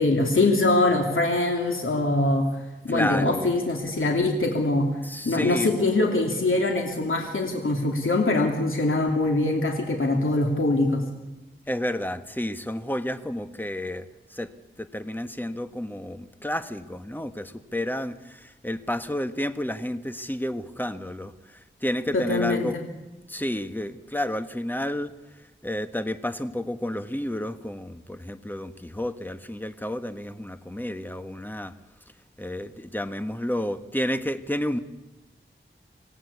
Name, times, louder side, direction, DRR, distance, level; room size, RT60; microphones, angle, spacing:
voice 1, 0.0-2.5 2.8-4.9 5.2-11.0 22.1-22.8, left 2 dB, 75° left, 2 dB, 2.8 m, -23 dB
voice 2, 2.9-3.5 5.0-5.7 11.7-14.5 14.8-22.8 23.3-25.1 25.6-31.7 32.4-34.8, left 1 dB, 10° left, 10 dB, 1.4 m, -31 dB
25.5 x 17.5 x 8.5 m, 1.1 s
wide cardioid pair, 70°, 21 cm